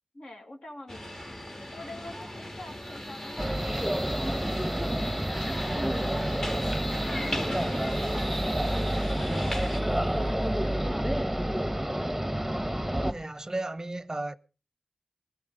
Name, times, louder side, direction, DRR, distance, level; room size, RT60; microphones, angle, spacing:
voice 1, 0.1-1.4 1.7-5.4 5.8-8.6 9.0-11.8, left 1 dB, 60° left, 2.1 m, -46 dB
sound 1, 0.9-9.8, left 1 dB, 30° left, 1.7 m, -38 dB
sound 2, 0.9-13.5, equal, 10° left, 2.7 m, -43 dB
sound 3, 3.4-13.1, equal, 5° right, 1.0 m, -29 dB
voice 2, 13.1-14.4, right 2 dB, 30° right, 0.6 m, -34 dB
20.5 x 12.0 x 3.8 m
wide cardioid pair, 50°, 2 cm